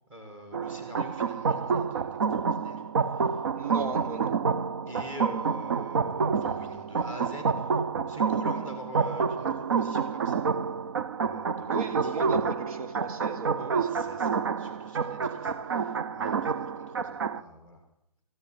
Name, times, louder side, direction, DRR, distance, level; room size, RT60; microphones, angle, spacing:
voice 1, 0.1-4.2 4.8-10.8 11.2-12.4 13.8-17.9, left 1 dB, 10° right, 4 dB, 1.8 m, -46 dB
sound 1, 0.5-17.4, right 5 dB, 40° right, 0.4 m, -28 dB
voice 2, 3.5-4.4 11.7-13.9, right 4 dB, 65° right, 9 dB, 1.3 m, -36 dB
14.5 x 6.9 x 9.8 m, 0.82 s
hypercardioid pair, 170°, 20 cm